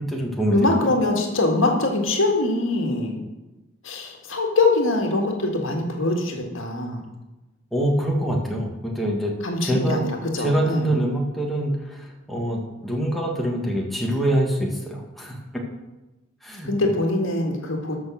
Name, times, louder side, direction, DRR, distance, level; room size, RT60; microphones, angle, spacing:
voice 1, 0.0-0.8 7.7-9.3 9.6-10.0 10.4-15.4 16.4-16.9, right 1 dB, ahead, -2 dB, 1.9 m, -25 dB
voice 2, 0.5-3.2 3.8-7.0 9.4-11.0 16.6-18.0, left 2 dB, 65° left, 2 dB, 1.9 m, -23 dB
13.0 x 6.3 x 6.2 m, 1.1 s
head